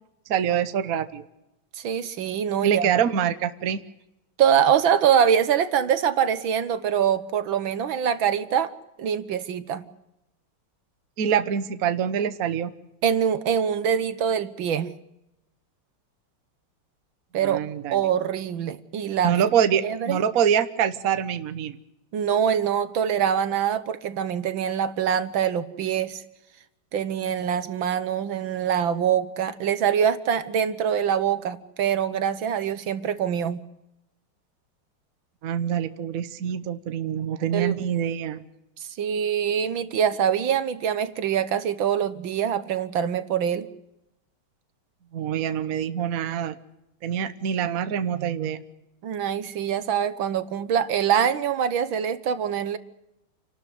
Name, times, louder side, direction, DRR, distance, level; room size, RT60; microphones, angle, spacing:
voice 1, 0.3-1.2 2.6-3.8 11.2-12.7 17.4-18.0 19.2-21.8 35.4-38.4 45.1-46.6 47.0-48.6, right 8 dB, 50° right, 11 dB, 1.3 m, -25 dB
voice 2, 1.8-3.0 4.4-8.7 9.0-9.9 13.0-14.9 17.3-17.6 17.9-19.4 19.8-20.2 22.1-26.2 26.9-33.6 37.5-37.8 38.8-43.7 49.0-52.8, right 8 dB, 70° right, 13 dB, 1.8 m, -24 dB
28.5 x 12.5 x 9.3 m, 0.89 s
omnidirectional pair, 2.3 m